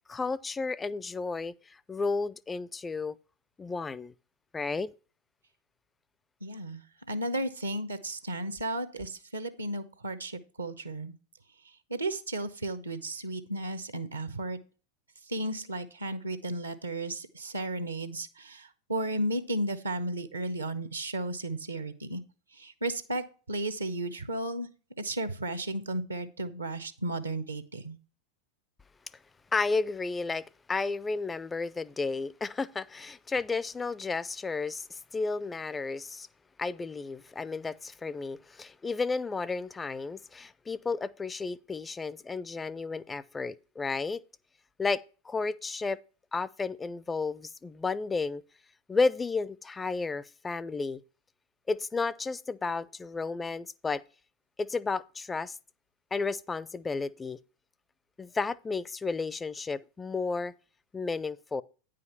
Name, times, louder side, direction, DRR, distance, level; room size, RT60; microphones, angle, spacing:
voice 1, 0.1-3.2 3.6-4.1 4.5-4.9 29.5-36.3 36.6-44.2 44.8-46.0 46.3-48.4 48.9-51.0 51.7-54.0 54.6-55.6 56.1-57.4 58.2-60.5 60.9-61.6, left 4 dB, 15° left, 0.4 m, -32 dB
voice 2, 6.4-6.8 7.1-11.1 11.9-14.6 15.3-22.2 22.6-24.7 25.0-28.0, right 1 dB, 80° right, 0.8 m, -34 dB
9.4 x 5.1 x 5.7 m
figure-of-eight pair, 90°, 0 cm